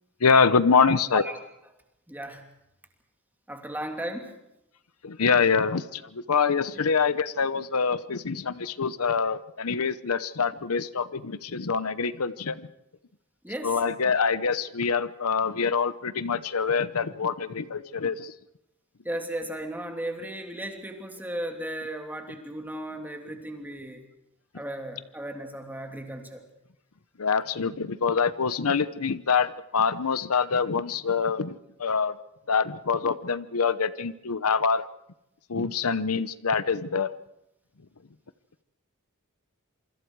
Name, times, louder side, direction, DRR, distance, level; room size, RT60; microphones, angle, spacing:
voice 1, 0.2-1.2 5.0-12.7 13.6-18.3 27.2-32.1 32.5-34.8 35.5-37.1, left 5 dB, 85° left, 15 dB, 0.9 m, -25 dB
voice 2, 2.1-2.5 3.5-4.3 13.4-13.8 19.0-24.1 24.5-26.4, right 1 dB, 10° right, 3 dB, 2.8 m, -35 dB
27.0 x 25.0 x 4.7 m, 0.86 s
head